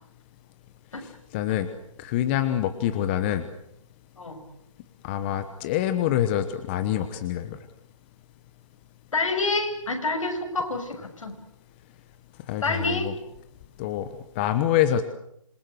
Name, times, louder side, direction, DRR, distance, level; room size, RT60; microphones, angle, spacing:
voice 1, 1.0-1.7 2.0-3.5 5.0-7.6 12.5-13.1 13.8-14.1 14.3-15.0, left 11 dB, 20° left, 10 dB, 1.1 m, -26 dB
voice 2, 9.1-11.4 12.6-13.1, left 3 dB, 65° left, 5 dB, 6.4 m, -27 dB
27.5 x 22.0 x 7.9 m, 0.76 s
hypercardioid pair, 160°, 18 cm